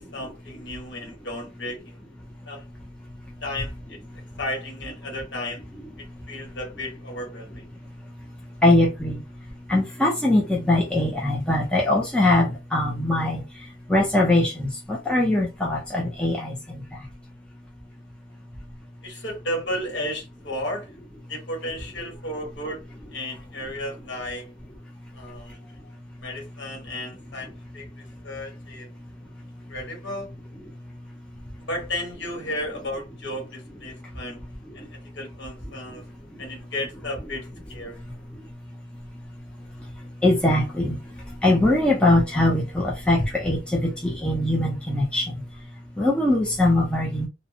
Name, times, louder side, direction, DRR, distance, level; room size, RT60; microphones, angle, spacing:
voice 1, 0.0-2.0 2.5-2.7 3.4-4.0 4.4-5.6 6.3-7.7 19.0-20.9 21.3-22.8 23.1-24.5 25.1-25.9 26.2-28.9 29.7-30.3 31.7-34.4 34.7-34.9 35.1-36.0 36.4-38.0, left 1 dB, 65° left, 1.2 m, -33 dB
voice 2, 8.6-9.2 9.7-13.4 13.9-16.6 40.2-41.0 41.4-45.3 46.0-47.3, left 1 dB, 5° left, 0.4 m, -21 dB
2.6 x 2.0 x 2.6 m
head